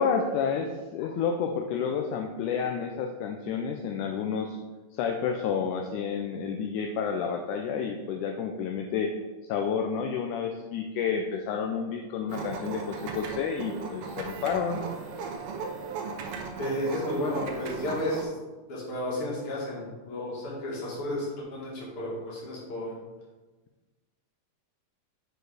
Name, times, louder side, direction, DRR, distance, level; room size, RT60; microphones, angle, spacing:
voice 1, 0.0-4.6 4.9-9.1 9.5-14.8, left 6 dB, 80° left, 3 dB, 2.0 m, -30 dB
sound 1, 12.3-18.2, right 4 dB, 90° right, 1.3 m, -37 dB
voice 2, 16.6-18.3 18.7-21.3 21.5-22.9, left 1 dB, 45° left, -5 dB, 2.6 m, -32 dB
6.4 x 4.6 x 4.9 m, 1.2 s
omnidirectional pair, 3.7 m